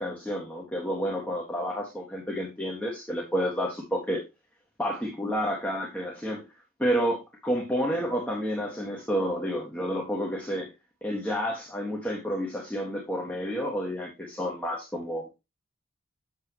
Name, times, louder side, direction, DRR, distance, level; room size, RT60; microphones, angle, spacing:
voice 1, 0.0-4.2 4.8-6.5 6.8-10.7 11.0-15.3, equal, 5° left, 1.5 m, -30 dB
8.1 x 6.8 x 2.9 m
head